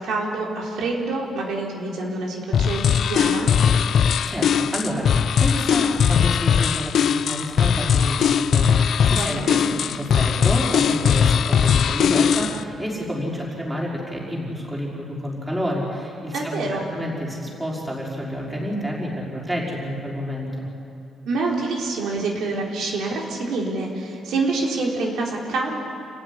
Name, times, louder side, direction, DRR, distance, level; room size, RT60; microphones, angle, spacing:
voice 1, 0.0-3.5 9.1-9.6 16.3-16.8 21.2-25.8, right 3 dB, 80° right, -1 dB, 3.8 m, -26 dB
sound 1, 2.5-12.6, left 7 dB, 60° left, 0.6 m, -19 dB
voice 2, 4.0-20.7, equal, 10° right, -4 dB, 5.1 m, -29 dB
28.0 x 15.0 x 9.8 m, 2.6 s
cardioid pair, 145°, 0 cm